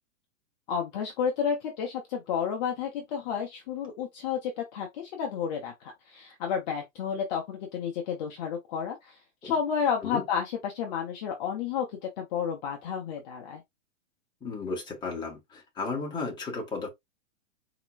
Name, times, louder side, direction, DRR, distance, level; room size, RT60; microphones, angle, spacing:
voice 1, 0.7-13.6, left 7 dB, 35° left, 0.8 m, -31 dB
voice 2, 14.4-16.9, left 4 dB, 10° left, 1.2 m, -34 dB
4.2 x 2.9 x 2.3 m
hypercardioid pair, 150°, 39 cm